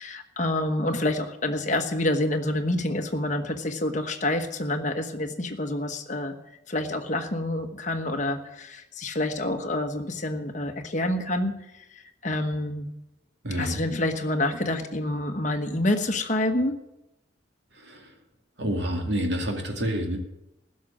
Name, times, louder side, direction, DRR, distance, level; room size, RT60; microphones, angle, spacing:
voice 1, 0.0-6.3 6.7-11.5 12.2-12.9 13.6-16.8, left 1 dB, 40° left, 5 dB, 1.2 m, -27 dB
voice 2, 13.4-13.8 17.8-18.1 18.6-20.2, equal, 70° right, 2 dB, 2.4 m, -28 dB
15.5 x 6.5 x 8.7 m, 0.91 s
head